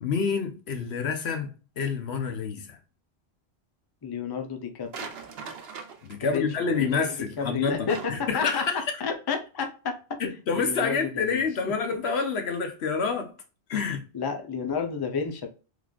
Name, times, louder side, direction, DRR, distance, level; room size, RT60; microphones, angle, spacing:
voice 1, 0.0-2.8 6.0-8.8 10.2-13.3 13.7-14.0, left 5 dB, 80° left, 1.1 m, -28 dB
voice 2, 4.0-5.1 6.2-8.7 9.0-10.2 10.6-12.0 14.1-15.5, left 5 dB, 30° left, 0.5 m, -31 dB
sound 1, 4.9-6.4 7.9-8.4, right 5 dB, 70° right, 0.9 m, -40 dB
3.9 x 3.1 x 2.3 m
omnidirectional pair, 1.1 m